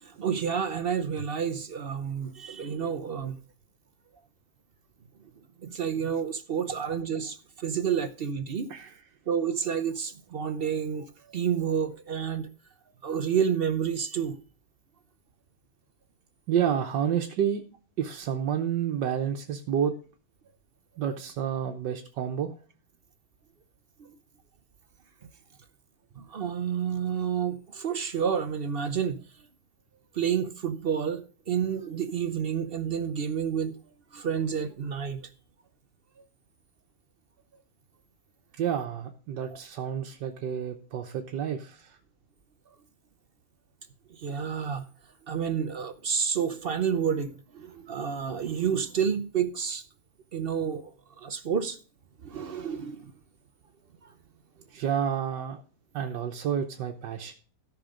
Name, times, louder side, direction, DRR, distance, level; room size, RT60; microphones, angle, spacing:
voice 1, 0.0-3.4 5.6-8.7 9.3-12.5 13.0-14.4 24.0-24.1 26.2-29.5 30.1-33.8 34.1-35.3 39.5-39.6 44.1-44.9 45.3-49.8 50.3-51.8 52.2-53.1 54.0-54.1, right 7 dB, 60° right, 0.6 m, -30 dB
voice 2, 16.5-17.6 18.0-19.9 21.0-22.5 38.5-42.0 54.7-55.6 55.9-57.3, right 8 dB, 90° right, 1.6 m, -29 dB
13.5 x 5.8 x 5.1 m
omnidirectional pair, 1.8 m